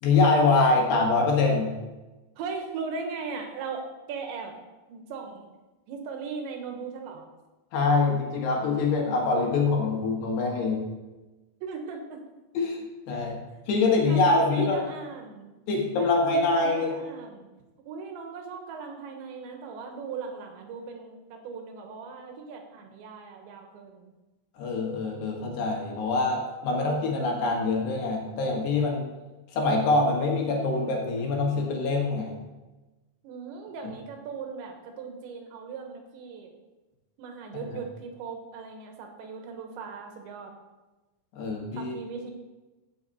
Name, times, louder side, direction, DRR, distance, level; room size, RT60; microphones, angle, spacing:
voice 1, 0.0-1.8 7.7-10.9 12.6-12.8 13.1-13.4 13.7-14.8 15.7-17.0 24.6-29.1 29.5-32.4 41.3-42.0, left 3 dB, 65° left, 0 dB, 3.6 m, -24 dB
voice 2, 2.4-3.8 4.1-4.5 4.9-5.5 5.9-7.2 11.6-12.2 13.1-13.3 14.1-15.5 16.0-17.5 17.9-24.1 33.2-36.6 37.2-40.5 41.7-42.3, right 5 dB, 75° right, 3 dB, 3.4 m, -38 dB
15.5 x 7.2 x 4.2 m, 1.1 s
omnidirectional pair, 5.4 m